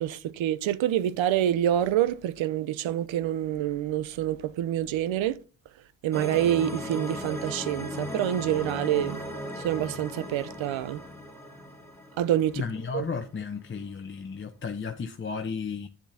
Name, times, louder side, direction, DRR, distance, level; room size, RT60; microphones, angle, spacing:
voice 1, 0.0-5.4 6.0-9.2 9.6-11.0 12.2-12.6 12.9-13.1, right 11 dB, 70° right, 0.8 m, -27 dB
sound 1, 6.1-13.2, equal, 5° left, 2.6 m, -37 dB
voice 2, 12.6-15.9, left 5 dB, 25° left, 0.9 m, -33 dB
10.0 x 7.1 x 2.8 m
cardioid pair, 80°, 49 cm